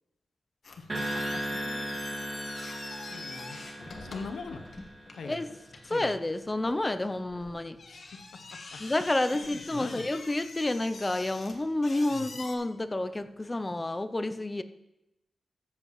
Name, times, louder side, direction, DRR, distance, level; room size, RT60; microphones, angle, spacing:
voice 1, 0.6-3.6 4.0-4.7 5.1-5.5 5.8-6.1 7.9-8.8 9.3-10.1 12.1-12.3, left 4 dB, 90° left, 9 dB, 0.7 m, -44 dB
sound 1, 0.6-12.5, left 3 dB, 65° left, 1.4 m, -45 dB
sound 2, 0.9-5.4, right 1 dB, 30° right, 1.8 m, -37 dB
voice 2, 5.9-7.8 8.8-14.6, left 2 dB, 20° left, 11 dB, 0.5 m, -30 dB
14.5 x 7.6 x 3.1 m, 0.90 s
wide cardioid pair, 100°, 0 cm